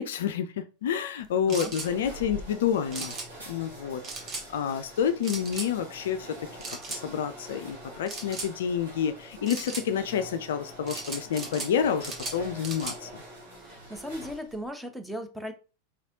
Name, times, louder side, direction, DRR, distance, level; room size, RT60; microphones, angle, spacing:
voice 1, 0.0-3.1 3.5-4.0 4.5-6.4 6.7-13.2, left 8 dB, 60° left, 9 dB, 0.3 m, -29 dB
sound 1, 1.2-14.7, right 1 dB, 75° right, 1.5 m, -45 dB
sound 2, 1.5-1.9 2.9-3.3 4.0-4.5 5.2-5.7 6.6-7.0 8.1-8.5 9.5-9.9 10.9-11.7 12.0-13.0, right 3 dB, 25° right, 1.0 m, -37 dB
voice 2, 13.6-15.5, equal, ahead, 5 dB, 0.5 m, -37 dB
4.3 x 3.2 x 2.6 m, 0.33 s
figure-of-eight pair, 90°, 0 cm